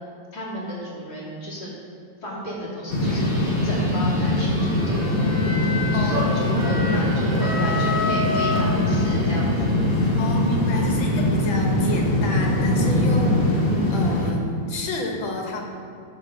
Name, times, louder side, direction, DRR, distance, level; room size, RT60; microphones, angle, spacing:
voice 1, 0.3-1.7 2.2-5.2 5.9-10.0, equal, 55° left, -7 dB, 3.2 m, -33 dB
sound 1, 2.9-14.3, left 1 dB, 30° left, 1.4 m, -22 dB
sound 2, 3.0-14.9, left 3 dB, 10° right, 1.2 m, -36 dB
sound 3, 4.5-9.4, left 2 dB, 70° right, 2.5 m, -29 dB
voice 2, 5.9-7.1 10.2-13.6 13.9-15.6, left 2 dB, 90° left, 1 dB, 2.1 m, -30 dB
11.0 x 5.0 x 6.3 m, 2.3 s
omnidirectional pair, 2.1 m